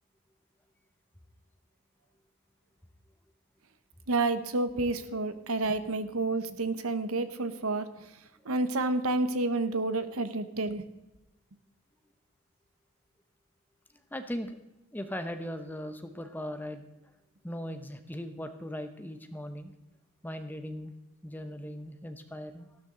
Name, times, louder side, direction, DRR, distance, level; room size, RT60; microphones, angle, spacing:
voice 1, 4.1-7.8 8.5-10.8, right 2 dB, 75° right, 11 dB, 1.0 m, -29 dB
voice 2, 14.1-14.5 14.9-16.8 17.4-19.7 20.2-20.9 21.2-22.8, equal, 10° left, 8 dB, 0.8 m, -38 dB
14.0 x 12.5 x 3.8 m, 0.98 s
head